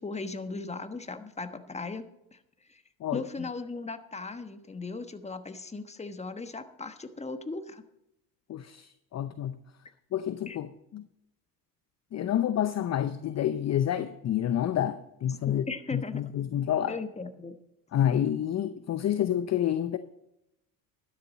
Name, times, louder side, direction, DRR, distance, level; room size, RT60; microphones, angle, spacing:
voice 1, 0.0-2.0 2.3-2.4 2.7-2.8 3.1-7.8 10.5-10.6 15.5-16.3 16.9-17.6, left 3 dB, 15° left, 1.2 m, -37 dB
voice 2, 8.5-9.6 10.1-11.1 12.1-15.6 15.9-16.9 17.9-20.0, left 10 dB, 35° left, 0.7 m, -28 dB
12.0 x 10.5 x 4.1 m
hypercardioid pair, 70°, 50 cm